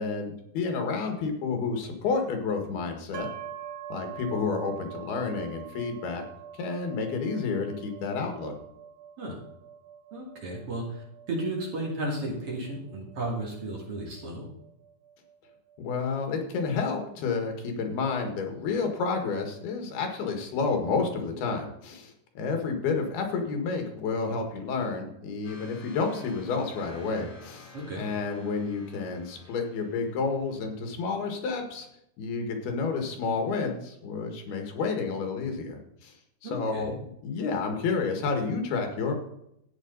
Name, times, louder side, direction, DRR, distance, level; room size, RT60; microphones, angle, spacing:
voice 1, 0.0-3.3 3.9-6.2 6.6-8.5 15.8-27.7 28.0-31.9 32.2-36.1 36.4-39.2, left 4 dB, 80° left, 4 dB, 3.6 m, -30 dB
sound 1, 3.1-16.8, right 9 dB, 65° right, 2.3 m, -45 dB
voice 2, 10.1-14.5 27.7-28.0 36.4-36.9, right 1 dB, 40° right, -2 dB, 3.1 m, -34 dB
sound 2, 25.4-31.0, left 3 dB, 60° left, 5.0 m, -51 dB
14.0 x 9.0 x 4.0 m, 0.80 s
omnidirectional pair, 4.4 m